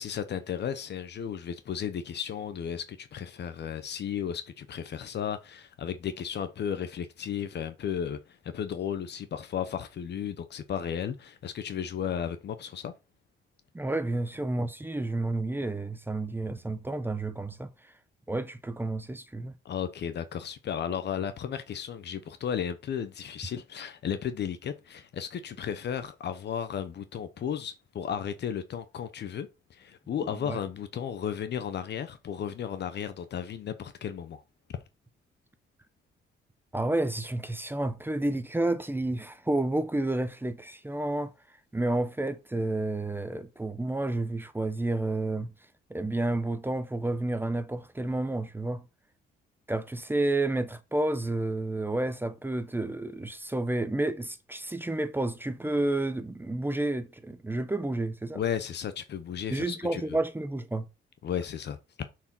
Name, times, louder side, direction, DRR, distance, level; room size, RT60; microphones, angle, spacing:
voice 1, 0.0-12.9 19.6-34.4 58.3-60.0 61.2-62.1, left 8 dB, 60° left, 0.9 m, -34 dB
voice 2, 13.7-17.7 18.3-19.5 30.5-30.6 36.7-41.3 41.7-45.5 45.9-48.8 49.7-58.4 59.5-60.9, right 2 dB, 10° right, 0.8 m, -30 dB
6.9 x 4.8 x 6.1 m
cardioid pair, 90°, 20 cm